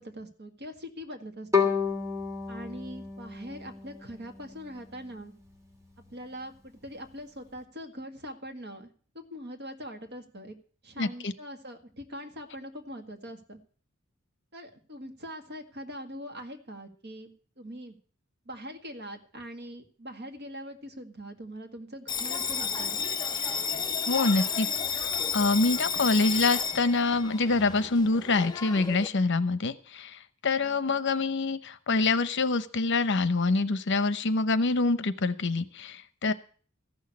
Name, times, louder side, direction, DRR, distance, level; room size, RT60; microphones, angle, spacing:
voice 1, 0.0-1.7 2.5-5.3 6.1-10.5 10.8-13.6 14.5-17.3 17.6-17.9 18.5-23.0 36.2-36.3, equal, 55° right, 5 dB, 1.9 m, -42 dB
Bowed string instrument, 1.5-4.6, left 6 dB, 15° right, 2.8 m, -30 dB
voice 2, 11.0-11.3 24.1-24.7 24.9-36.3, left 3 dB, 60° left, 14 dB, 0.9 m, -26 dB
Bell, 22.1-29.1, left 6 dB, 20° left, 0.7 m, -32 dB
14.5 x 6.4 x 9.6 m, 0.42 s
head